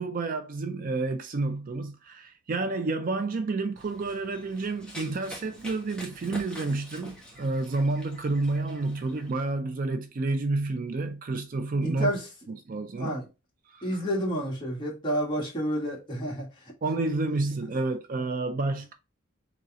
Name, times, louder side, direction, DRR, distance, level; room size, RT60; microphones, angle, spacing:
voice 1, 0.0-12.1 12.5-13.2 13.7-13.9 16.8-18.9, right 3 dB, 40° right, 0.4 m, -30 dB
Run, 3.8-9.3, equal, 5° left, 1.1 m, -46 dB
voice 2, 11.8-12.3 13.0-13.3 13.8-16.7, equal, 20° left, 1.7 m, -30 dB
4.1 x 3.1 x 3.5 m
head